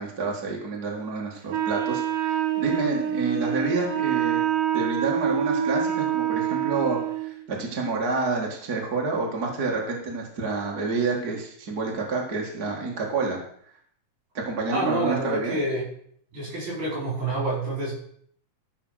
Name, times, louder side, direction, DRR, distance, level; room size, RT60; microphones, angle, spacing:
voice 1, 0.0-4.4 4.7-13.4 14.3-15.6, right 3 dB, 35° right, -1 dB, 2.1 m, -28 dB
Wind instrument woodwind instrument, 1.5-7.4, right 9 dB, 85° right, 3.0 m, -26 dB
voice 2, 14.7-15.9 16.3-17.9, right 2 dB, 65° right, -4 dB, 6.5 m, -27 dB
14.0 x 5.8 x 6.4 m, 0.63 s
omnidirectional pair, 3.6 m